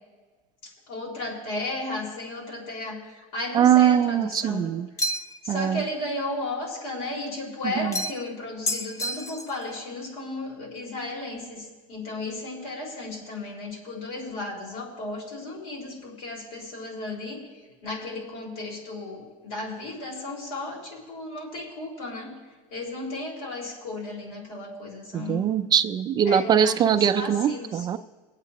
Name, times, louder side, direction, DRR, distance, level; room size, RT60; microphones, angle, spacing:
voice 1, 0.6-4.7 5.4-17.4 17.8-22.4 22.7-25.5 26.2-27.9, left 2 dB, 85° left, -3 dB, 4.0 m, -34 dB
voice 2, 3.5-4.9 5.5-5.8 25.1-28.0, right 9 dB, 25° right, 9 dB, 0.3 m, -21 dB
sound 1, 5.0-5.5 7.9-8.3 8.7-9.6, left 1 dB, 15° left, 0.6 m, -30 dB
22.5 x 8.1 x 2.9 m, 1.3 s
supercardioid pair, 140°, 18 cm